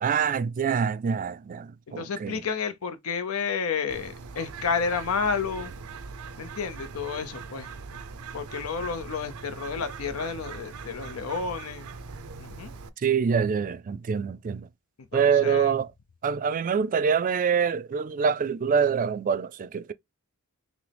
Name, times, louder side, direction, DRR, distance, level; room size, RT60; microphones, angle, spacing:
voice 1, 0.0-2.4 13.0-14.7 15.1-15.9 16.2-19.9, right 6 dB, 40° right, 0.3 m, -25 dB
voice 2, 1.9-5.7 6.4-7.7 8.3-11.9 12.4-12.7 15.1-15.7, left 5 dB, 80° left, 0.6 m, -31 dB
Bird, 3.9-12.9, right 4 dB, 85° right, 0.6 m, -41 dB
6.0 x 2.1 x 3.3 m
head